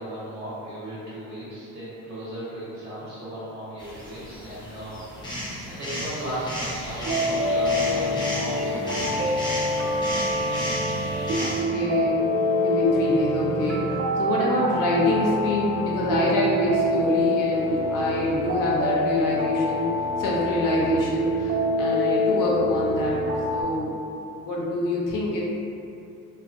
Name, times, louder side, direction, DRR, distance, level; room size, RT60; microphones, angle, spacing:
voice 1, 0.0-5.4 5.7-9.6, equal, 60° right, -12 dB, 1.2 m, -36 dB
sound 1, 3.8-11.6, equal, 15° left, 0.9 m, -34 dB
sound 2, 7.0-23.6, left 1 dB, 40° right, 0.5 m, -26 dB
voice 2, 11.4-12.3 12.6-23.2 23.5-23.9 24.4-25.4, left 1 dB, 70° left, -4 dB, 0.6 m, -25 dB
2.5 x 2.3 x 2.5 m, 2.6 s
supercardioid pair, 70°, 34 cm